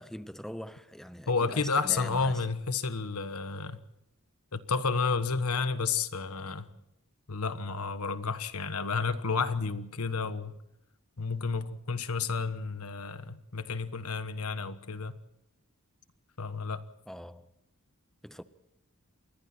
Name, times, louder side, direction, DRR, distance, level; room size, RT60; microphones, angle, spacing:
voice 1, 0.0-2.4 17.1-17.5 18.2-18.4, equal, ahead, 0.7 m, -42 dB
voice 2, 1.3-3.8 4.5-6.7 7.3-10.5 11.2-15.2 16.4-16.8, left 4 dB, 85° left, 1.3 m, -31 dB
28.5 x 22.0 x 4.4 m
head